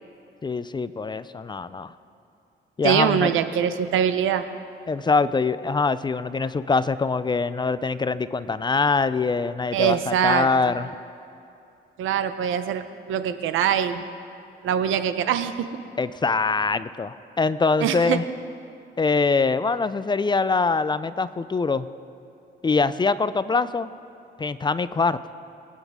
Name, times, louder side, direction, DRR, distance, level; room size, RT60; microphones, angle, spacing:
voice 1, 0.4-1.9 2.8-3.3 4.9-10.9 16.0-18.2 19.0-21.9 22.6-23.9 24.4-25.2, left 4 dB, 25° left, 15 dB, 0.4 m, -23 dB
voice 2, 2.8-4.5 9.7-10.7 12.0-14.0 14.6-15.7 17.8-18.2, right 9 dB, 85° right, 11 dB, 0.7 m, -23 dB
23.0 x 9.3 x 3.6 m, 2.6 s
cardioid pair, 90°, 20 cm